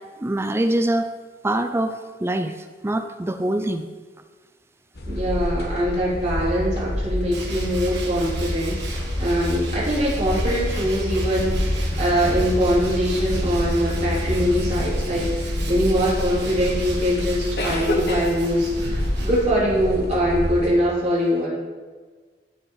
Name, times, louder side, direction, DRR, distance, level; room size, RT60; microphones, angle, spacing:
voice 1, 0.2-1.1 1.4-2.5 2.8-3.9, right 1 dB, 15° right, 8 dB, 0.5 m, -24 dB
sound 1, 5.0-20.7, left 1 dB, 65° left, 1.4 m, -27 dB
voice 2, 5.1-21.5, equal, 40° right, -7 dB, 3.2 m, -23 dB
Tools, 7.3-19.8, right 4 dB, 90° right, 2.2 m, -38 dB
15.0 x 5.2 x 4.8 m, 1.4 s
head